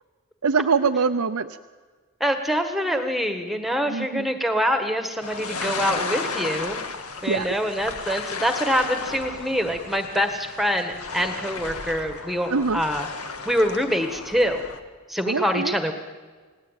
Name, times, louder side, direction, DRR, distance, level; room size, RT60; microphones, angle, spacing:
voice 1, 0.4-1.6 3.9-4.3 7.3-7.5 12.5-12.8 15.3-15.7, right 5 dB, 85° right, 9 dB, 0.7 m, -23 dB
voice 2, 2.2-6.8 7.2-13.0 13.4-14.6 15.1-15.9, equal, ahead, 7 dB, 1.5 m, -25 dB
sound 1, 5.2-14.8, left 4 dB, 85° left, 2.0 m, -34 dB
28.5 x 18.5 x 9.1 m, 1.5 s
head